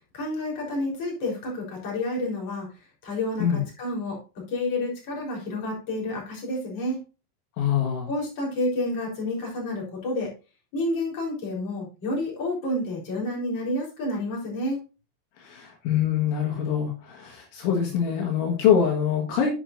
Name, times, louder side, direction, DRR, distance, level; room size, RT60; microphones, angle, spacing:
voice 1, 0.1-2.7 3.0-7.0 8.1-10.3 10.7-14.8, left 1 dB, 30° left, -3 dB, 4.6 m, -29 dB
voice 2, 7.6-8.1 15.4-19.5, left 8 dB, 75° left, 0 dB, 4.0 m, -24 dB
10.0 x 9.7 x 2.6 m, 0.30 s
omnidirectional pair, 5.6 m